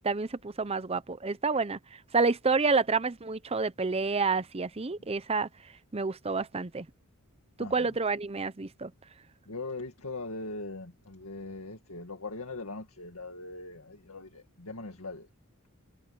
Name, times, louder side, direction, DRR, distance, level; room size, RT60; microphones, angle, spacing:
voice 1, 0.0-1.8 2.1-5.5 5.9-6.9 7.6-8.9, right 4 dB, 30° right, 0.7 m, -29 dB
voice 2, 7.6-8.0 9.5-15.3, left 3 dB, 85° left, 2.0 m, -40 dB
head